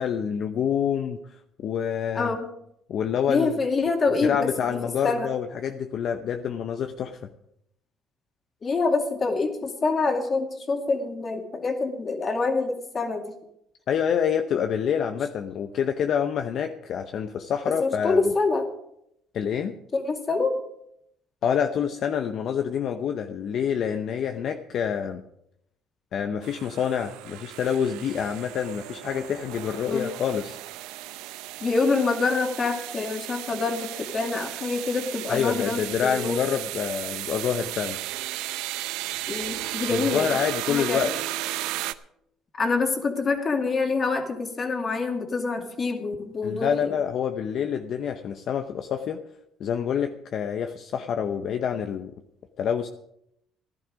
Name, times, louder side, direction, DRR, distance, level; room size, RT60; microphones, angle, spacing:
voice 1, 0.0-2.3 2.9-3.5 4.2-7.3 13.9-18.3 19.3-19.8 21.4-25.2 26.1-30.6 35.3-38.0 39.9-41.2 46.4-49.2 49.6-52.1 52.6-52.9, left 8 dB, 60° left, 7 dB, 0.8 m, -27 dB
voice 2, 2.1-2.5 3.3-4.8 5.0-5.3 8.6-13.3 17.8-18.7 19.9-20.5 29.9-30.1 31.6-36.4 39.3-40.3 40.7-41.1 42.6-47.0, left 4 dB, 35° left, 4 dB, 2.3 m, -26 dB
sound 1, 26.4-41.9, right 15 dB, 85° right, 0.6 m, -35 dB
15.0 x 11.5 x 5.1 m, 0.77 s
cardioid pair, 95°, 0 cm